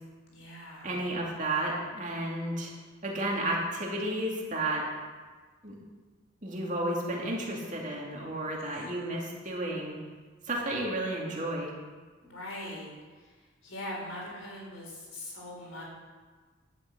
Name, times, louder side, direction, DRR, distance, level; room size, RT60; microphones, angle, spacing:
voice 1, 0.3-1.0 8.7-8.9 12.2-12.9 13.6-15.8, left 1 dB, 80° left, -3 dB, 4.2 m, -41 dB
voice 2, 0.8-2.7 3.0-4.9 5.6-5.7 6.4-10.0 10.5-11.7, right 1 dB, 35° right, -3 dB, 2.4 m, -32 dB
11.5 x 6.6 x 7.9 m, 1.4 s
head